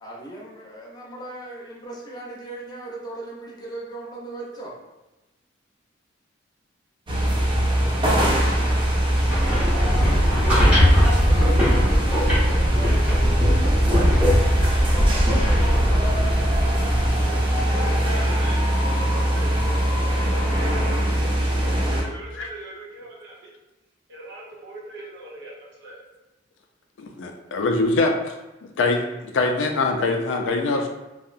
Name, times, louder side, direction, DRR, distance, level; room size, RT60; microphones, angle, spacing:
voice 1, 0.0-4.8 9.4-13.6 14.6-16.6 17.0-18.3, equal, 20° left, -4 dB, 0.5 m, -38 dB
sound 1, 7.1-22.0, right 1 dB, 25° right, 0.5 m, -22 dB
sound 2, 9.1-17.1, equal, 5° right, 0.9 m, -21 dB
voice 2, 17.7-18.6 19.0-20.9 21.9-23.5 24.1-26.0, right 1 dB, 70° right, -4 dB, 0.7 m, -40 dB
voice 3, 27.0-28.3 28.6-30.9, left 3 dB, 70° left, 4 dB, 0.4 m, -23 dB
2.7 x 2.0 x 2.4 m, 1.0 s
head